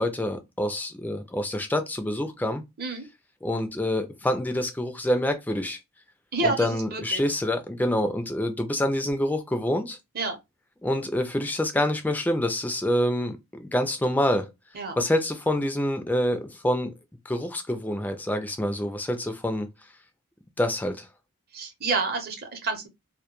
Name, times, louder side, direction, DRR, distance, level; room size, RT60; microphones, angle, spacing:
voice 1, 0.0-2.6 3.4-5.8 6.4-10.0 10.8-14.5 15.0-16.9 17.3-19.7 20.6-21.1, left 1 dB, 10° left, 0.3 m, -26 dB
voice 2, 6.3-7.2 10.1-10.4 14.7-15.0 21.5-22.9, right 3 dB, 45° right, 0.7 m, -29 dB
2.1 x 2.1 x 2.9 m
head